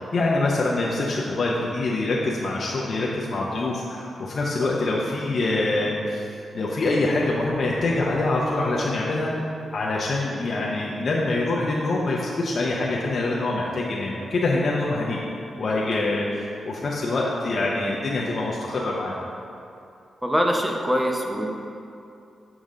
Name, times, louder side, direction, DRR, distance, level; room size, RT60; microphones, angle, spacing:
voice 1, 0.1-6.2 6.5-9.3 9.7-15.2 15.6-16.3 16.6-19.1, left 2 dB, 55° left, -4 dB, 0.7 m, -25 dB
voice 2, 20.2-21.5, equal, 5° right, 1 dB, 0.8 m, -23 dB
7.2 x 5.0 x 3.8 m, 2.6 s
cardioid pair, 75°, 0 cm